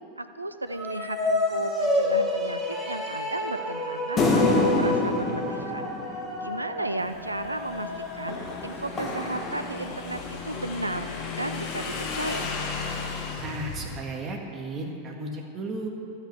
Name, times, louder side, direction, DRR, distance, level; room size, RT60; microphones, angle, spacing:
voice 1, 0.0-5.9 6.4-12.5, right 2 dB, 85° right, 10 dB, 0.6 m, -34 dB
sound 1, 0.7-9.2, left 1 dB, 5° right, 2.5 m, -29 dB
sound 2, 4.2-6.8 8.3-10.4, left 2 dB, 25° left, 1.7 m, -27 dB
Motorcycle / Engine, 7.0-14.0, left 4 dB, 40° left, 1.5 m, -35 dB
voice 2, 13.4-15.9, right 2 dB, 25° right, 1 dB, 1.9 m, -34 dB
12.5 x 8.1 x 7.1 m, 2.7 s
figure-of-eight pair, 90°, 0 cm